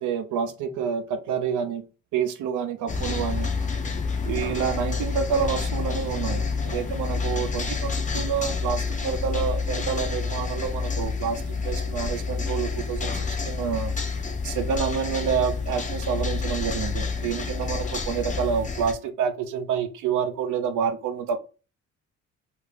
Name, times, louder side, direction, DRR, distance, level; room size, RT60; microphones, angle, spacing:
voice 1, 0.0-1.9 2.1-3.5 4.2-13.9 14.4-21.4, right 7 dB, 80° right, 0.6 m, -28 dB
sound 1, 2.9-18.9, left 4 dB, 25° left, 0.5 m, -29 dB
2.6 x 2.5 x 3.2 m
cardioid pair, 90°, 30 cm